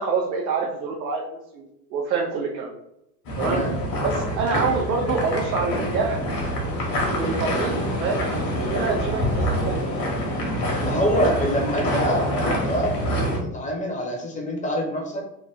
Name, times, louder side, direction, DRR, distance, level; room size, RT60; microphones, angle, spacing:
voice 1, 0.0-2.7 3.4-3.6 4.0-6.2 6.9-9.8, right 4 dB, 90° right, 0 dB, 0.6 m, -27 dB
sound 1, 3.2-13.4, equal, 45° left, 1.2 m, -26 dB
voice 2, 3.4-3.7 10.8-15.2, equal, 15° left, 1 dB, 0.8 m, -26 dB
3.1 x 2.1 x 3.2 m, 0.82 s
hypercardioid pair, 85°, 50 cm